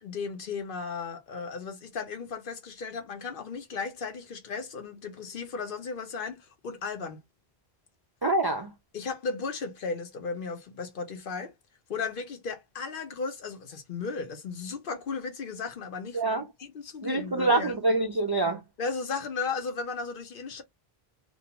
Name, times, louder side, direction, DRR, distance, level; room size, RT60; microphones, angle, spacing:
voice 1, 0.0-7.2 8.9-11.5 11.9-17.8 18.8-20.6, left 5 dB, 60° left, 0.8 m, -35 dB
voice 2, 8.2-8.7 16.1-16.4 17.0-18.6, right 2 dB, 40° right, 0.3 m, -25 dB
2.6 x 2.2 x 2.8 m
omnidirectional pair, 1.0 m